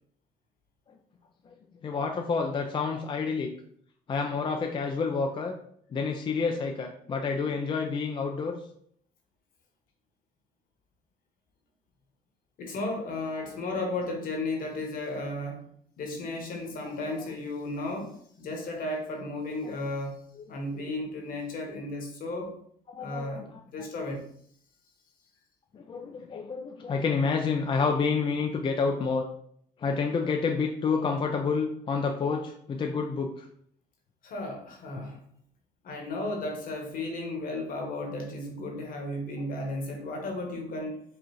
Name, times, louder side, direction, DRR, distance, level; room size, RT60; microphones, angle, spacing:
voice 1, 1.8-3.5 4.1-5.5 5.9-8.6 20.4-20.5 22.9-23.4 25.7-29.3 29.8-33.5, left 5 dB, 30° left, 2 dB, 0.4 m, -29 dB
voice 2, 12.6-15.7 16.0-20.2 20.5-22.5 23.0-24.2 34.2-35.2 35.8-41.0, left 2 dB, 55° left, 2 dB, 1.1 m, -34 dB
4.8 x 2.4 x 3.1 m, 0.66 s
cardioid pair, 110°, 17 cm